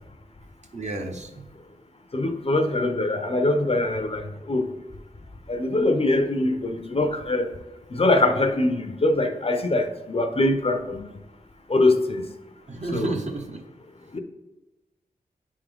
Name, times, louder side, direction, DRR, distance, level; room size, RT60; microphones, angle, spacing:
voice 1, 0.7-1.5 12.7-13.6, right 3 dB, 45° right, 3 dB, 0.8 m, -31 dB
voice 2, 2.1-4.7 5.5-7.5 7.9-11.0 11.7-12.2 12.9-13.1 14.1-14.2, left 2 dB, 35° left, 7 dB, 0.6 m, -23 dB
9.4 x 3.7 x 3.5 m, 1.0 s
wide cardioid pair, 75°, 16 cm